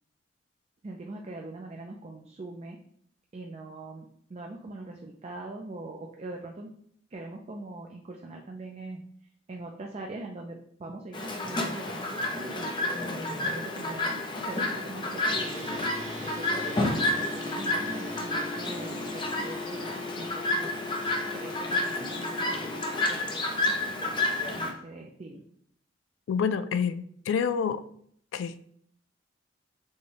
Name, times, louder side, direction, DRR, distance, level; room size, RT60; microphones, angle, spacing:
voice 1, 0.8-2.8 3.3-6.7 7.1-9.0 9.5-12.7 13.4-16.0 16.3-20.9 21.3-24.2 24.5-25.4, right 2 dB, 35° right, 1 dB, 0.4 m, -42 dB
Chirp tweet, 11.1-24.7, left 2 dB, 25° left, 0.5 m, -30 dB
sound 1, 15.3-23.0, left 2 dB, 75° right, 1.7 m, -40 dB
voice 2, 26.3-27.8 28.3-28.7, left 6 dB, 85° left, 12 dB, 0.3 m, -28 dB
6.2 x 2.2 x 3.2 m, 0.65 s
head